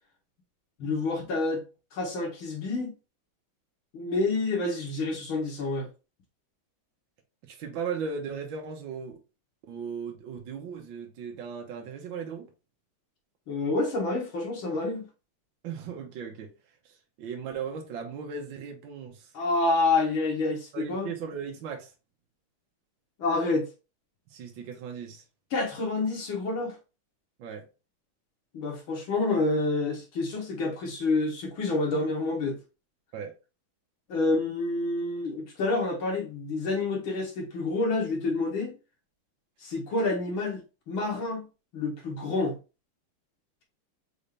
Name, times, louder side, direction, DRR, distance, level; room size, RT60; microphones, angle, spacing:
voice 1, 0.8-1.6 1.9-2.9 3.9-5.9 13.5-15.1 19.3-21.1 23.2-23.7 25.5-26.8 28.5-32.6 34.1-38.7 39.6-40.6 40.9-41.4 41.7-42.6, left 3 dB, 70° left, 2.2 m, -28 dB
voice 2, 7.4-9.2 9.7-12.5 15.6-16.5 16.8-19.3 20.7-21.9 24.3-25.2 27.4-27.6 33.1-33.3, right 6 dB, 65° right, 1.6 m, -37 dB
5.3 x 2.7 x 3.3 m
omnidirectional pair, 2.4 m